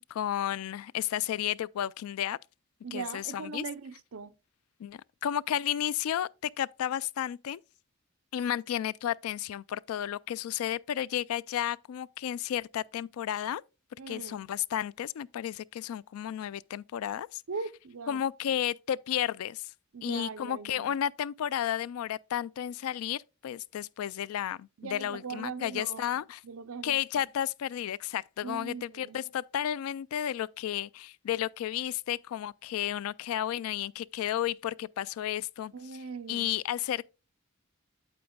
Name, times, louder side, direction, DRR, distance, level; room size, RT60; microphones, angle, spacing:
voice 1, 0.1-2.4 2.9-3.6 4.8-7.6 8.3-13.6 14.1-17.4 18.1-19.7 20.0-26.4 26.8-35.7 36.3-37.1, left 10 dB, 85° left, 0.3 m, -32 dB
voice 2, 2.8-4.3 14.0-14.4 17.5-18.2 19.9-21.0 24.8-26.1 26.4-27.3 28.4-29.2 35.7-36.5, right 5 dB, 80° right, 0.6 m, -40 dB
9.0 x 7.8 x 2.2 m
head